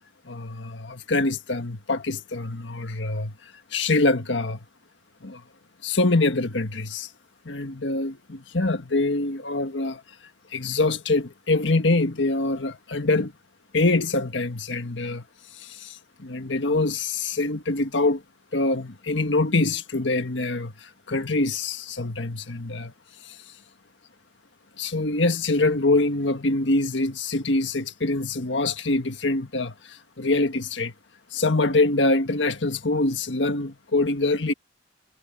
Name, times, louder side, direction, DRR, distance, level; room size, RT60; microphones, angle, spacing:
voice 1, 0.2-3.3 3.7-4.6 5.2-5.4 5.8-7.1 7.4-10.0 10.5-13.3 13.7-15.2 15.5-18.2 18.5-22.9 23.2-23.4 24.8-30.9 31.3-34.5, left 2 dB, 75° left, 1.6 m, -24 dB
head